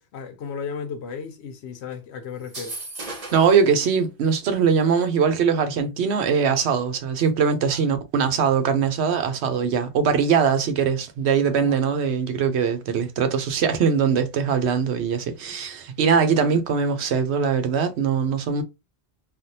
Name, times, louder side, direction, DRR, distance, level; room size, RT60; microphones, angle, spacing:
voice 1, 0.0-2.8 7.7-7.8 11.7-11.8, left 6 dB, 80° left, 0.9 m, -35 dB
sound 1, 2.4-3.6, right 2 dB, 35° right, 0.9 m, -35 dB
voice 2, 3.3-18.6, right 6 dB, 85° right, 1.0 m, -21 dB
3.4 x 2.3 x 2.7 m
omnidirectional pair, 1.1 m